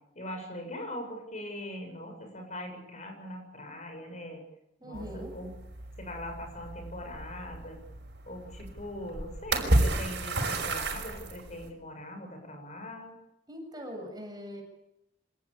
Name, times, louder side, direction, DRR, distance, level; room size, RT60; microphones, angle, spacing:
voice 1, 0.2-4.4 4.8-5.5 6.0-7.8 8.3-13.2, left 1 dB, 45° left, 4 dB, 7.3 m, -41 dB
voice 2, 4.8-5.4 13.5-14.6, equal, 25° right, 3 dB, 7.4 m, -41 dB
sound 1, 4.9-11.7, right 2 dB, 70° right, 5.6 m, -32 dB
26.0 x 19.0 x 8.7 m, 0.82 s
head